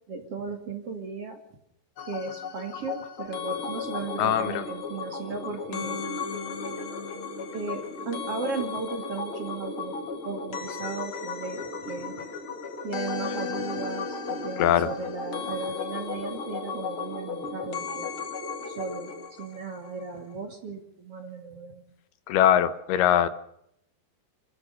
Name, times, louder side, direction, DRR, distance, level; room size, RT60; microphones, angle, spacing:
voice 1, 0.1-1.4 2.1-6.0 7.5-10.0 10.2-12.1 12.8-18.1 18.7-19.1 19.4-21.8, right 4 dB, 40° right, 5 dB, 3.0 m, -36 dB
sound 1, 2.0-20.0 20.3-20.4, left 6 dB, 45° left, 2.0 m, -36 dB
sound 2, 3.3-19.2, equal, 15° left, 3.1 m, -40 dB
voice 2, 4.2-4.6 14.6-14.9 22.3-23.3, left 10 dB, 80° left, 13 dB, 3.0 m, -21 dB
29.0 x 14.5 x 6.5 m, 0.77 s
omnidirectional pair, 4.5 m